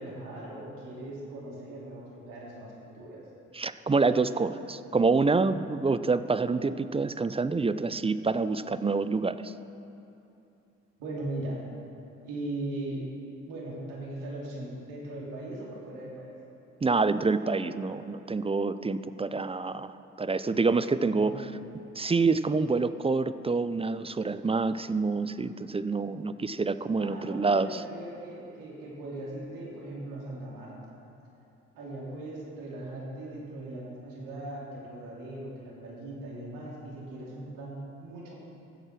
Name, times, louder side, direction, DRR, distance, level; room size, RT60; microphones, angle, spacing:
voice 1, 0.0-3.2 11.0-11.6 12.2-13.0 13.5-16.3 21.0-21.4 27.0-30.9 31.7-38.4, right 1 dB, 80° right, -4 dB, 2.9 m, -39 dB
voice 2, 3.5-9.5 16.8-21.4 22.0-27.8, right 4 dB, 20° right, 13 dB, 0.5 m, -27 dB
14.0 x 7.8 x 6.0 m, 2.8 s
hypercardioid pair, 50°, 32 cm